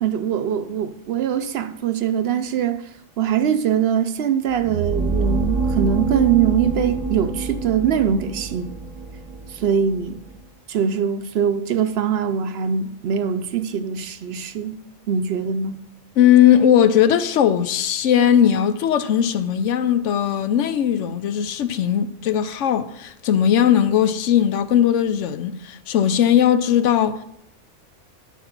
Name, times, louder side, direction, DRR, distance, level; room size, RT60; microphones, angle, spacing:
voice 1, 0.0-2.8 3.2-8.7 9.5-10.2 10.7-14.8 15.1-15.8, right 8 dB, 65° right, 0.8 m, -22 dB
sound 1, 4.5-10.4, right 4 dB, 30° right, 0.9 m, -26 dB
voice 2, 16.2-27.2, left 9 dB, 80° left, 0.9 m, -18 dB
12.0 x 4.3 x 5.9 m
omnidirectional pair, 1.2 m